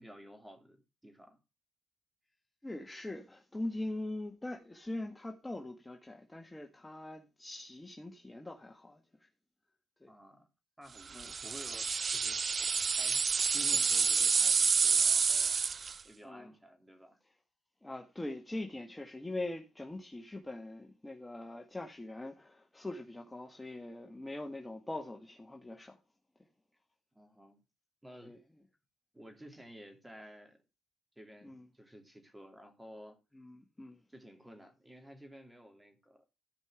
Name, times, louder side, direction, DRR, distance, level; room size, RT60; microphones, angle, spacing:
voice 1, 0.0-1.4 10.1-10.5 10.8-12.4 12.9-13.2 13.5-15.6 16.0-17.2 27.1-27.6 28.0-28.3 29.1-30.6 31.1-33.2 34.1-36.2, equal, 10° right, 3.1 m, -53 dB
voice 2, 2.6-9.3 10.0-10.1 11.1-11.3 16.2-16.5 17.8-26.0 28.2-28.4 31.4-31.6 33.3-34.0, left 2 dB, 10° left, 1.5 m, -42 dB
sound 1, 11.2-16.0, right 5 dB, 40° right, 0.6 m, -29 dB
15.0 x 5.3 x 5.0 m
cardioid pair, 90°, 0 cm